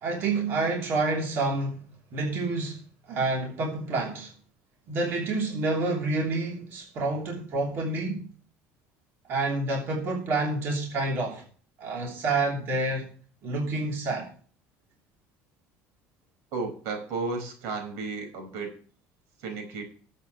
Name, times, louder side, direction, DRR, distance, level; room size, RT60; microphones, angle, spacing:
voice 1, 0.0-1.8 2.1-2.8 3.1-4.3 4.9-8.2 9.3-11.4 11.8-13.1 13.4-14.3, right 3 dB, 50° right, 3.1 m, -28 dB
voice 2, 16.5-18.7 19.4-19.8, right 4 dB, 85° right, 4.9 m, -33 dB
20.0 x 8.2 x 3.1 m
cardioid pair, 150°, 5 cm